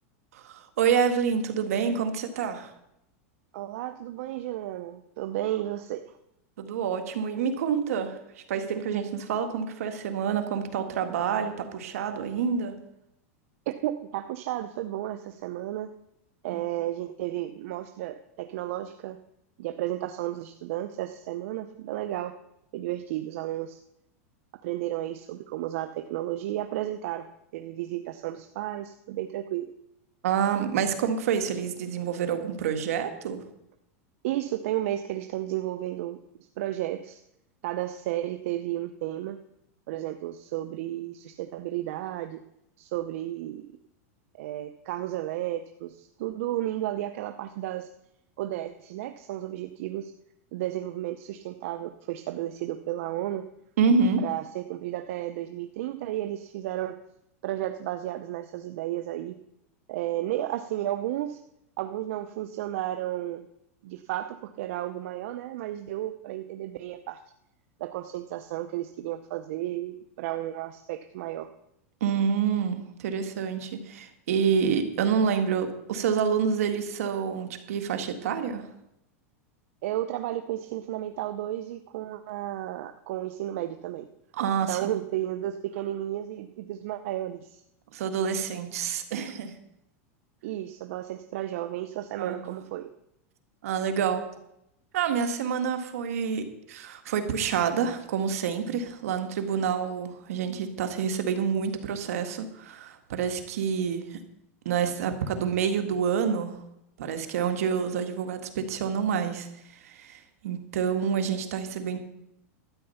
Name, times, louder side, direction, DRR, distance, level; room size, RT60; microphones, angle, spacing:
voice 1, 0.3-2.7 6.6-8.2 8.5-12.8 16.5-16.6 30.2-33.4 53.8-54.3 72.0-78.7 84.3-84.8 87.9-89.5 92.2-92.6 93.6-94.2 94.9-104.2 104.7-106.6 107.0-112.0, right 7 dB, 80° right, 7 dB, 1.8 m, -28 dB
voice 2, 3.5-6.1 13.7-15.9 16.4-19.2 19.6-22.3 22.7-23.8 24.6-29.7 34.2-36.2 36.6-37.2 37.6-39.4 39.9-42.4 42.8-43.7 44.4-47.9 48.4-50.1 50.5-53.4 54.2-57.0 57.4-59.3 59.9-61.4 61.8-63.4 63.8-67.2 67.8-71.5 79.8-84.1 84.7-87.6 90.4-92.9, right 13 dB, 65° right, 9 dB, 0.7 m, -33 dB
12.5 x 9.0 x 5.7 m, 0.80 s
supercardioid pair, 145°, 8 cm